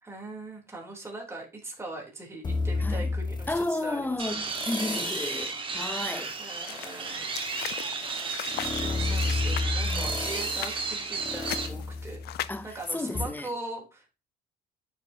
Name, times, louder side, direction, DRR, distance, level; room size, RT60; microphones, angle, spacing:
voice 1, 0.0-4.8 6.4-7.3 8.3-12.3 12.6-14.2, right 2 dB, 15° right, 3.4 m, -41 dB
sound 1, 2.4-3.9 4.5-5.5 6.0-12.7 13.1-13.2, left 3 dB, 25° left, 1.6 m, -32 dB
voice 2, 3.5-6.3 9.9-10.1 12.5-12.7 12.9-13.5, left 2 dB, 10° left, 0.6 m, -32 dB
sound 2, 4.2-11.7, right 4 dB, 30° right, 1.6 m, -33 dB
sound 3, 6.7-13.0, left 14 dB, 70° left, 0.6 m, -40 dB
9.6 x 5.8 x 2.8 m
cardioid pair, 110°, 17 cm